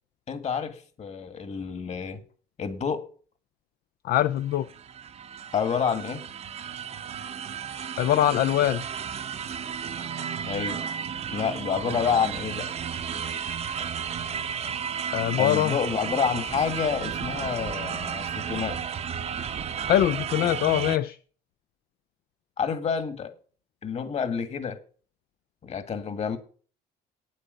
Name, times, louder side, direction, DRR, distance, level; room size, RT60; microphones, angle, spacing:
voice 1, 0.3-2.2 2.6-3.0 5.5-6.2 10.4-10.8 11.3-12.7 15.4-18.8 22.6-23.3 23.8-24.8 25.6-26.4, left 7 dB, 40° left, 1.9 m, -28 dB
voice 2, 4.0-4.7 8.0-8.8 15.1-15.8 19.9-21.2, left 12 dB, 65° left, 0.4 m, -23 dB
sound 1, 4.4-21.0, right 7 dB, 40° right, 0.7 m, -33 dB
9.0 x 8.4 x 6.6 m
cardioid pair, 110°, 17 cm